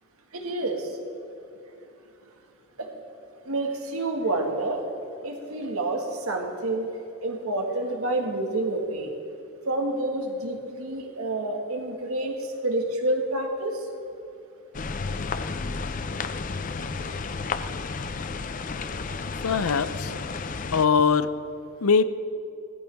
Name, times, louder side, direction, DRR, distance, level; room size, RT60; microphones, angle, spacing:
voice 1, 0.3-0.9 2.8-2.9 3.5-4.9 5.2-6.9 7.2-9.1 9.7-12.3 12.6-13.8, right 2 dB, 85° right, 2 dB, 1.8 m, -28 dB
sound 1, 14.7-20.9, left 4 dB, 35° left, 0.5 m, -32 dB
voice 2, 19.4-20.2 20.7-21.3 21.8-22.0, left 5 dB, 90° left, 14 dB, 0.6 m, -21 dB
18.5 x 14.0 x 3.5 m, 2.8 s
head